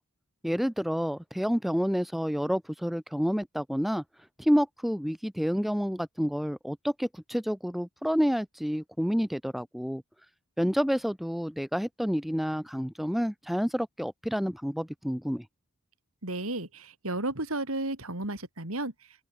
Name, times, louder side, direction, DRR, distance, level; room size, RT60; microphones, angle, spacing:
voice 1, 0.4-4.0 4.4-10.0 10.6-15.4, equal, ahead, 0.4 m, -29 dB
voice 2, 16.2-18.9, right 2 dB, 75° right, 5.0 m, -33 dB
open air
head